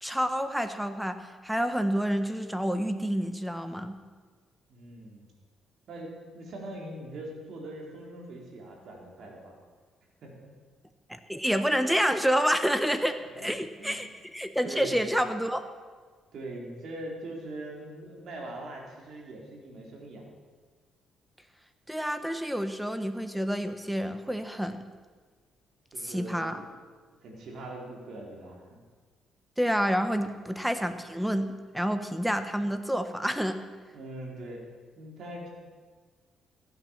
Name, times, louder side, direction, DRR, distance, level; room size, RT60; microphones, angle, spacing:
voice 1, 0.0-4.0 11.1-15.6 21.9-24.8 26.0-26.6 29.6-31.5 31.7-33.6, equal, ahead, 9 dB, 1.2 m, -28 dB
voice 2, 4.7-5.3 5.9-9.6 10.2-10.5 13.3-13.5 13.8-14.1 14.6-15.1 16.3-20.3 25.9-26.7 27.2-28.8 33.9-34.6 35.0-35.5, right 1 dB, 65° right, -1 dB, 4.2 m, -42 dB
15.0 x 9.4 x 7.3 m, 1.5 s
cardioid pair, 90°, 0 cm